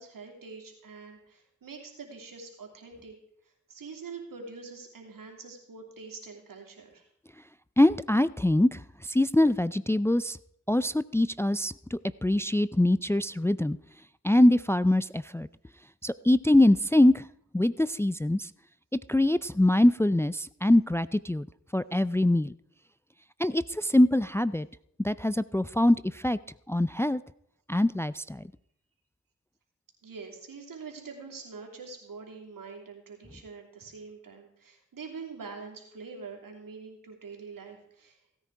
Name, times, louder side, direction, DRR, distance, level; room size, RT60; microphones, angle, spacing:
voice 1, 0.0-3.1 3.7-7.1 30.0-38.2, right 4 dB, 85° right, 2 dB, 2.8 m, -44 dB
voice 2, 7.8-8.8 9.1-10.4 10.7-13.8 14.2-15.5 16.0-17.2 17.5-18.5 19.1-21.5 21.7-22.5 23.4-24.7 25.0-26.0 26.2-26.4 26.7-27.2 27.7-28.4, left 1 dB, 10° left, 16 dB, 0.4 m, -23 dB
16.5 x 9.7 x 4.7 m, 0.70 s
cardioid pair, 45°, 33 cm